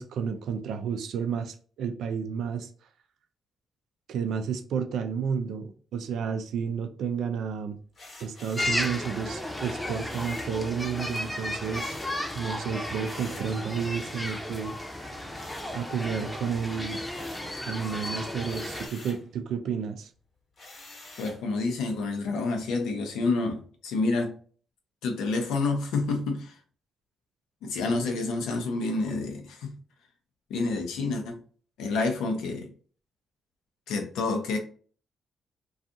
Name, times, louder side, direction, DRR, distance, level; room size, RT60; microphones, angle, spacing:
voice 1, 0.0-2.7 4.1-7.8 8.2-11.9 12.3-14.7 15.7-17.0 17.7-20.1, right 6 dB, 75° right, 0.3 m, -31 dB
sound 1, 7.9-8.8 10.1-10.6 11.7-12.2 13.0-13.5 15.3-16.2 16.6-17.6 18.4-19.3 20.6-21.4, left 2 dB, 55° left, 1.0 m, -48 dB
sound 2, 8.6-18.9, left 1 dB, 15° left, 0.7 m, -34 dB
voice 2, 21.2-24.3 25.0-26.5 27.6-29.7 30.5-31.4 31.8-32.7 33.9-34.6, left 3 dB, 80° left, 0.5 m, -28 dB
2.5 x 2.3 x 2.6 m
supercardioid pair, 50°, 0 cm